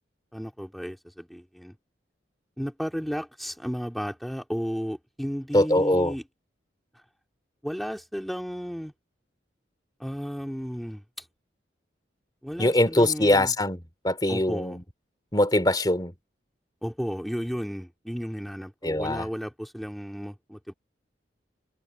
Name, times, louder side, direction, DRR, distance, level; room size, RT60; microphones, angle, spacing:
voice 1, 0.3-1.8 2.6-6.2 7.6-8.9 10.0-11.3 12.4-13.5 14.3-14.8 16.8-20.7, equal, ahead, 2.3 m, -33 dB
voice 2, 5.5-6.1 12.6-14.8 15.3-16.1 18.8-19.3, left 1 dB, 20° left, 3.0 m, -22 dB
head